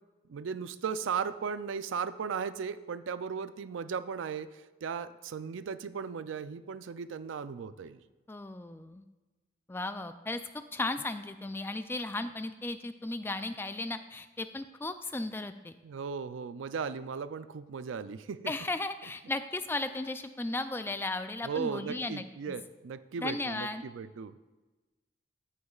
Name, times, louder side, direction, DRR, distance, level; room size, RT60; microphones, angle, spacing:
voice 1, 0.3-8.0 15.8-18.5 21.4-24.4, right 6 dB, 90° right, 13 dB, 0.4 m, -36 dB
voice 2, 8.3-9.0 9.7-10.4 10.7-15.7 18.5-22.3 23.2-23.8, left 2 dB, 10° left, 10 dB, 0.3 m, -35 dB
14.5 x 6.6 x 2.4 m, 1.2 s
head